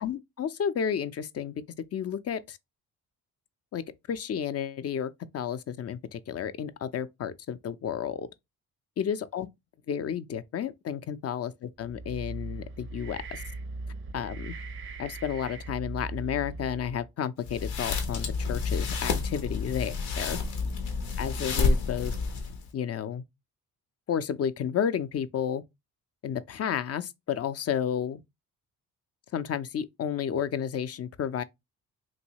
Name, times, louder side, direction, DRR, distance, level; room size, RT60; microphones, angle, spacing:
voice 1, 0.0-1.6 1.9-2.6 3.7-3.8 4.1-8.3 9.0-9.5 9.9-13.4 14.1-14.5 15.0-20.4 21.2-22.1 22.7-23.2 24.1-25.6 26.2-28.2 29.3-31.4, left 8 dB, 40° left, 0.4 m, -32 dB
sound 1, 11.8-17.1, right 3 dB, 35° right, 0.4 m, -39 dB
sound 2, 17.4-22.7, left 4 dB, 90° left, 0.8 m, -29 dB
3.0 x 2.6 x 2.8 m
supercardioid pair, 60°, 38 cm